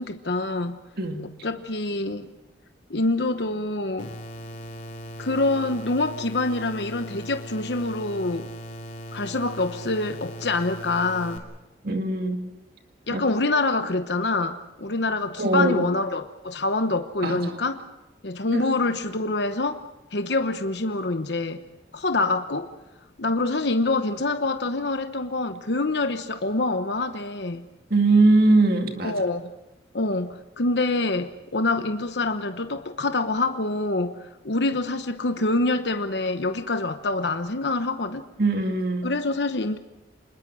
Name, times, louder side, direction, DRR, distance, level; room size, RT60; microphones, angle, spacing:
voice 1, 0.0-0.8 1.4-2.3 2.9-4.1 5.2-8.5 9.1-11.4 13.1-17.8 18.2-19.8 20.1-21.6 21.9-22.7 23.2-27.6 29.0-29.5 29.9-38.2 39.0-39.8, left 2 dB, 70° left, 1.0 m, -26 dB
sound 1, 4.0-11.4, equal, 45° left, 2.9 m, -39 dB
voice 2, 11.8-12.4 13.1-13.2 15.4-15.8 17.2-17.6 18.5-18.6 27.9-29.1 38.4-39.1, right 2 dB, 55° right, 2.3 m, -21 dB
26.5 x 21.0 x 6.3 m
head